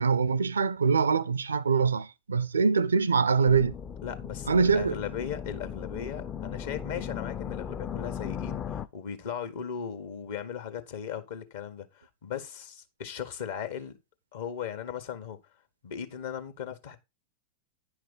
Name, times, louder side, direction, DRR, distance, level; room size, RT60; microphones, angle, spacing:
voice 1, 0.0-3.8 4.5-5.0, right 5 dB, 75° right, 0.5 m, -24 dB
sound 1, 3.5-8.9, left 8 dB, 25° left, 0.6 m, -37 dB
voice 2, 4.0-14.0 14.3-15.4 15.8-17.0, left 8 dB, 55° left, 1.6 m, -37 dB
10.0 x 5.8 x 4.0 m
figure-of-eight pair, 90°, 0 cm